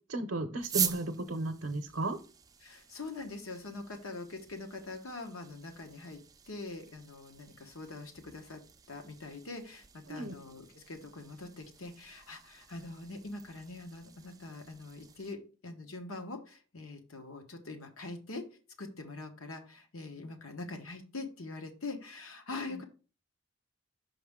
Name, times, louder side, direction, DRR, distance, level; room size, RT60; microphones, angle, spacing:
voice 1, 0.1-2.2 10.1-10.3, right 2 dB, 65° right, 4 dB, 0.6 m, -34 dB
sound 1, 0.6-15.3, right 8 dB, 15° right, 0.3 m, -43 dB
voice 2, 2.6-6.2 6.5-8.6 8.9-18.4 18.8-22.8, left 3 dB, 85° left, 5 dB, 1.2 m, -43 dB
5.5 x 5.4 x 3.6 m, 0.35 s
head